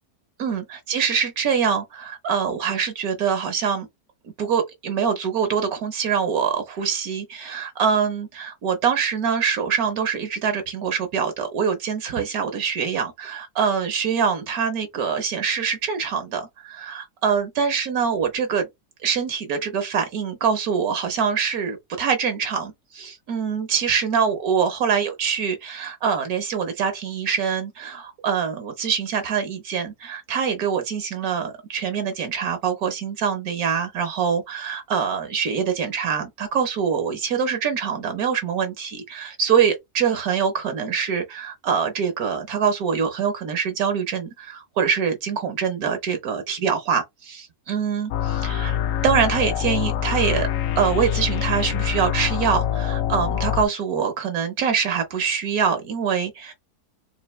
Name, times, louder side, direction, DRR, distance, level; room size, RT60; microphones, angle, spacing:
voice 1, 0.4-3.9 4.4-18.7 19.0-50.5 50.8-56.5, right 6 dB, 70° right, 1.3 m, -24 dB
sound 1, 48.1-53.6, left 10 dB, 65° left, 0.9 m, -25 dB
4.2 x 2.5 x 3.0 m
omnidirectional pair, 1.6 m